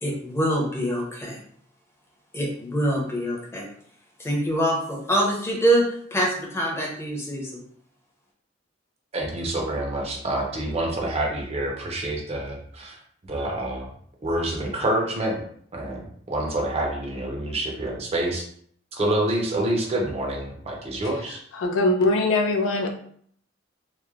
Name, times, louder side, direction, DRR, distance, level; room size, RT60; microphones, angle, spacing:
voice 1, 0.0-1.4 2.3-3.7 4.2-5.8 6.1-7.5, right 1 dB, 15° left, -2 dB, 0.6 m, -24 dB
voice 2, 9.1-13.0 13.3-13.9 14.2-15.4 15.7-18.4 18.9-21.4, right 1 dB, 30° right, 0 dB, 0.5 m, -27 dB
voice 3, 21.5-22.9, left 2 dB, 85° left, 4 dB, 0.4 m, -21 dB
3.0 x 2.0 x 2.3 m, 0.62 s
head